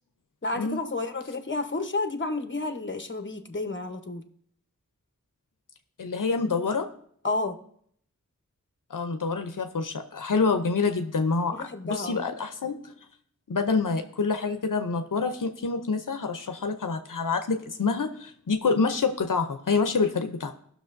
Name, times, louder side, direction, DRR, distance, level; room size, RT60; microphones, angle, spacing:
voice 1, 0.4-4.2 7.2-7.6 11.5-12.2, left 2 dB, 40° left, 7 dB, 0.9 m, -31 dB
voice 2, 6.0-6.9 8.9-12.8 13.5-20.5, left 4 dB, 90° left, 7 dB, 0.6 m, -27 dB
17.5 x 6.2 x 2.6 m, 0.64 s
wide cardioid pair, 40°, 31 cm